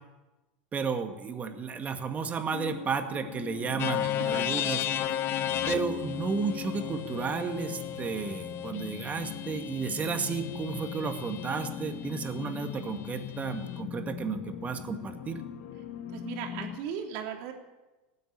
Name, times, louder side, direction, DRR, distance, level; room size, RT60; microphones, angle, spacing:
voice 1, 0.7-4.8 5.7-15.4, right 5 dB, 25° right, 6 dB, 2.0 m, -33 dB
sound 1, 2.5-16.8, left 10 dB, 65° left, 1.8 m, -40 dB
sound 2, 3.8-11.7, left 10 dB, 45° left, 1.1 m, -34 dB
voice 2, 4.0-4.6 16.1-17.5, right 8 dB, 65° right, 2 dB, 3.1 m, -38 dB
18.5 x 7.9 x 10.0 m, 1.1 s
hypercardioid pair, 100°, 6 cm